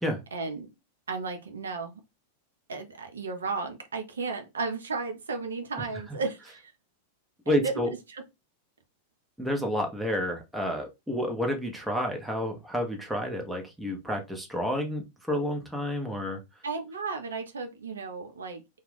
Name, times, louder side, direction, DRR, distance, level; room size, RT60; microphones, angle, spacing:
voice 1, 0.3-0.7 1.1-2.0 2.7-6.7 7.5-8.2 16.6-18.6, right 4 dB, 85° right, 0.5 m, -34 dB
voice 2, 7.5-7.9 9.4-16.4, left 1 dB, 5° right, 0.8 m, -30 dB
2.4 x 2.3 x 3.3 m
hypercardioid pair, 100°, 0 cm